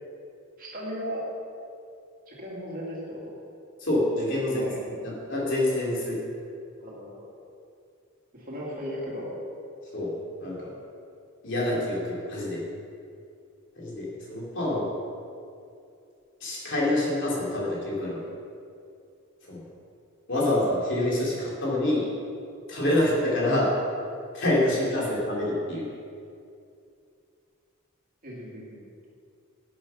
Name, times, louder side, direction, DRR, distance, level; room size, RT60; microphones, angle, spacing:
voice 1, 0.6-1.3 2.3-3.4 4.5-4.7 6.8-7.4 8.3-9.4 28.2-28.8, equal, 40° right, -4 dB, 2.7 m, -36 dB
voice 2, 3.8-4.7 5.0-6.2 9.9-10.1 10.4-10.7 11.4-12.6 13.8-14.9 16.4-18.2 19.4-19.6 20.3-22.1 22.7-23.7 24.3-25.9, left 1 dB, 60° left, -4 dB, 3.2 m, -26 dB
11.5 x 7.9 x 5.7 m, 2.5 s
head